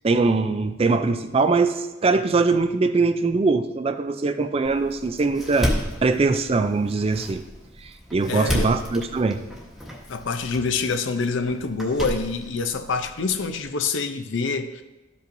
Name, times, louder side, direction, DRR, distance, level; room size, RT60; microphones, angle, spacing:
voice 1, 0.0-5.7 6.0-7.4 7.8-9.4, right 3 dB, 30° right, 0.3 m, -22 dB
Door, 4.6-13.6, equal, ahead, 1.1 m, -33 dB
voice 2, 8.3-8.8 10.1-14.8, left 4 dB, 65° left, 0.6 m, -26 dB
13.0 x 5.3 x 2.6 m
head